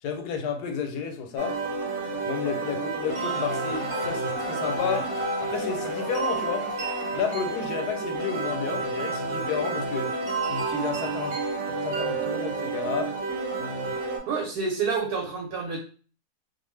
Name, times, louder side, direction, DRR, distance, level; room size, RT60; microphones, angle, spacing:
voice 1, 0.0-1.6 2.2-5.1 5.4-6.7 7.1-10.1 10.5-11.4 11.8-13.2, left 7 dB, 90° left, 1.2 m, -31 dB
sound 1, 1.4-14.2, right 3 dB, 60° right, 1.0 m, -30 dB
sound 2, 2.8-7.9, left 3 dB, 50° left, 0.8 m, -38 dB
voice 2, 14.2-15.8, right 5 dB, 85° right, 1.2 m, -28 dB
2.5 x 2.4 x 3.1 m
omnidirectional pair, 1.6 m